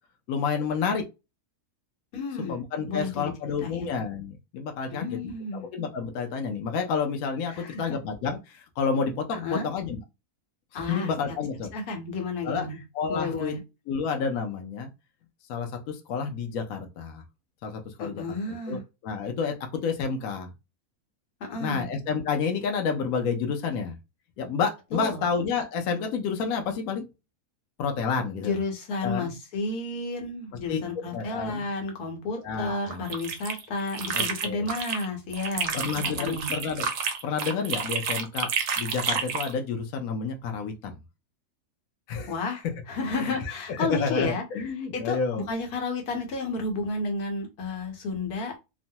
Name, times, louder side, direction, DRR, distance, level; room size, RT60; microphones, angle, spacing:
voice 1, 0.3-1.1 2.4-10.0 10.7-11.7 12.4-12.7 12.9-13.6 13.9-14.9 15.5-17.2 17.6-18.2 18.7-20.5 21.6-24.0 24.4-27.0 27.8-28.6 29.0-29.3 30.7-30.8 31.1-31.7 32.4-33.0 34.1-34.7 35.7-36.9 37.2-38.5 38.8-41.0 42.1-42.4 43.1-43.3 43.7-45.5, left 5 dB, 75° left, 4 dB, 1.0 m, -30 dB
voice 2, 2.1-2.6 2.9-3.3 3.6-4.0 4.9-5.7 7.5-8.0 9.3-9.7 10.7-11.4 11.7-12.8 13.1-13.6 18.0-18.8 21.4-21.9 24.9-25.2 28.4-35.8 36.2-36.5 42.3-44.4 44.8-48.6, left 3 dB, 90° left, 3 dB, 1.4 m, -32 dB
sound 1, 32.9-35.1 35.3-39.5, right 6 dB, 70° right, 0.7 m, -30 dB
3.0 x 2.1 x 2.7 m, 0.25 s
omnidirectional pair, 1.6 m